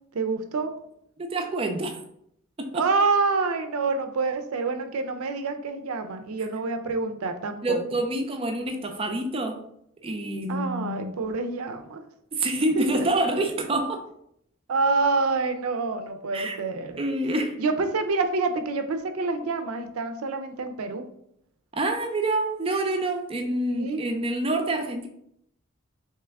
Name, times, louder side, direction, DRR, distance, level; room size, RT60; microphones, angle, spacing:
voice 1, 0.1-0.7 2.7-7.8 10.5-12.0 12.8-13.1 14.7-17.0 17.6-21.1 23.7-24.0, right 3 dB, 85° right, 8 dB, 0.5 m, -27 dB
voice 2, 1.2-2.0 2.6-2.9 7.6-9.6 10.0-11.1 12.3-14.0 16.3-16.6 17.0-17.6 21.7-25.1, right 2 dB, 25° right, 4 dB, 0.4 m, -27 dB
3.3 x 3.0 x 3.4 m, 0.73 s
head